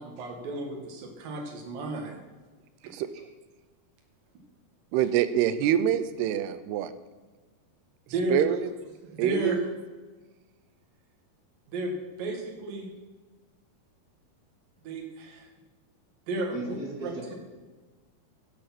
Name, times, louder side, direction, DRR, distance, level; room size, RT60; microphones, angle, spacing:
voice 1, 0.0-2.2 2.8-2.9 8.1-8.4 9.1-9.6 11.7-11.9 12.2-12.9 14.8-15.5 16.3-16.8 17.0-17.3, right 1 dB, 65° right, 2 dB, 3.5 m, -33 dB
voice 2, 4.9-6.9 8.3-8.6 9.2-9.6, right 10 dB, 85° right, 12 dB, 2.8 m, -25 dB
voice 3, 16.5-17.3, right 2 dB, 25° right, -3 dB, 2.5 m, -36 dB
14.5 x 8.5 x 6.0 m, 1.3 s
omnidirectional pair, 4.6 m